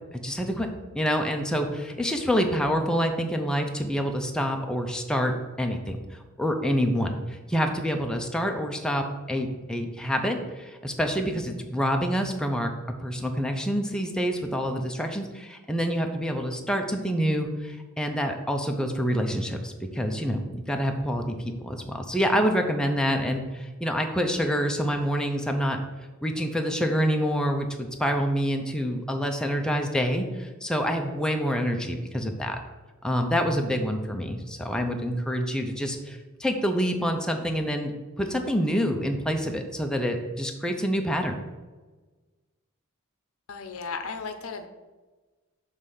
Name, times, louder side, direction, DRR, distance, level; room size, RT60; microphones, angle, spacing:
voice 1, 0.2-5.3 5.6-12.7 13.0-25.8 26.2-32.6 33.0-41.3, equal, 5° left, 3 dB, 0.5 m, -27 dB
voice 2, 43.5-44.7, left 4 dB, 70° left, 7 dB, 0.6 m, -35 dB
6.6 x 3.2 x 5.5 m, 1.2 s
head